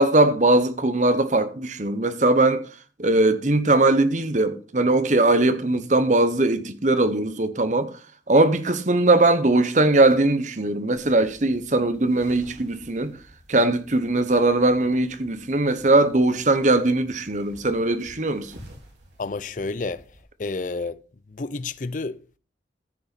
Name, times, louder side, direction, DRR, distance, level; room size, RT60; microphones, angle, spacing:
voice 1, 0.0-2.7 3.0-7.9 8.3-13.2 13.5-18.5, right 2 dB, 40° right, 0.9 m, -20 dB
sound 1, 10.9-20.2, equal, 75° right, 3.9 m, -51 dB
voice 2, 19.2-20.0 20.4-21.0 21.3-22.4, left 3 dB, 45° left, 0.5 m, -30 dB
14.0 x 6.8 x 4.1 m
head